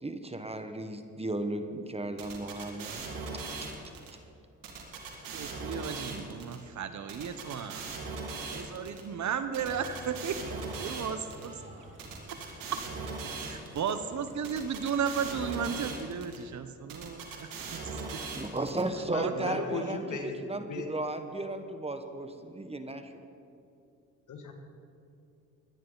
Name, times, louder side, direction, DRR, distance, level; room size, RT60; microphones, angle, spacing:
voice 1, 0.0-3.1 18.3-23.1, right 2 dB, 20° right, 7 dB, 1.3 m, -35 dB
sound 1, 2.2-4.1 4.6-6.6 7.1-9.0 9.5-11.5 12.0-13.9 14.4-16.4 16.9-18.8, right 4 dB, 80° right, 2.2 m, -39 dB
voice 2, 5.3-8.0 8.5-11.6 12.3-12.4 12.7-12.9 13.3-18.4 19.2-20.4, right 7 dB, 60° right, 11 dB, 1.0 m, -35 dB
sound 2, 9.6-16.0, right 1 dB, 35° right, 3.0 m, -50 dB
voice 3, 19.1-20.9 24.3-24.5, left 4 dB, 60° left, 4 dB, 2.1 m, -37 dB
22.0 x 10.0 x 4.0 m, 2.6 s
supercardioid pair, 65°, 33 cm